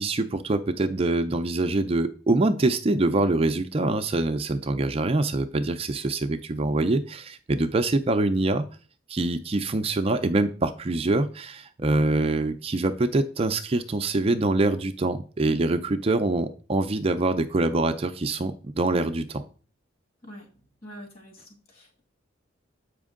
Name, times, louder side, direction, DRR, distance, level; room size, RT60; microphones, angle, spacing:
voice 1, 0.0-8.6 9.1-19.4, right 2 dB, 30° right, 8 dB, 0.4 m, -24 dB
voice 2, 20.8-22.0, equal, 45° left, 2 dB, 2.3 m, -45 dB
8.2 x 5.2 x 3.6 m, 0.39 s
head